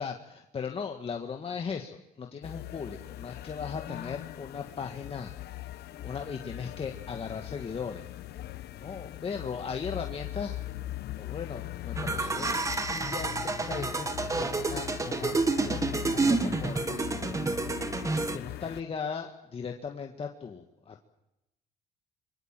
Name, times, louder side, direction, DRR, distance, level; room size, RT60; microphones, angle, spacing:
voice 1, 0.0-5.3 5.7-8.1 8.8-10.6 11.2-12.5 12.9-14.1 14.4-15.3 15.6-17.0 18.3-21.0, left 6 dB, 35° left, 3 dB, 1.8 m, -37 dB
sound 1, 2.4-18.8, left 14 dB, 70° left, 1.1 m, -40 dB
sound 2, 12.0-18.4, right 3 dB, 20° right, 1.5 m, -29 dB
25.5 x 23.5 x 7.6 m, 0.90 s
cardioid pair, 110°, 17 cm